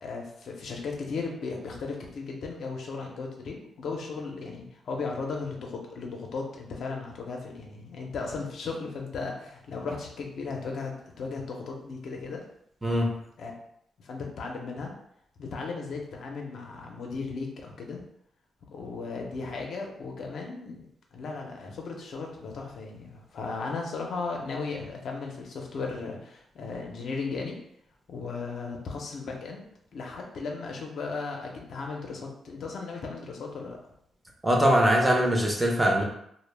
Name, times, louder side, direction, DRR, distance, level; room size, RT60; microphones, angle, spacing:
voice 1, 0.0-12.4 13.4-13.5 14.0-14.9 15.4-18.0 18.7-27.6 28.1-29.6 29.9-33.8, left 4 dB, 65° left, 1 dB, 0.5 m, -36 dB
voice 2, 12.8-13.1 34.4-36.0, equal, 15° right, -1 dB, 0.5 m, -22 dB
2.1 x 2.0 x 3.2 m, 0.72 s
cardioid pair, 105°, 0 cm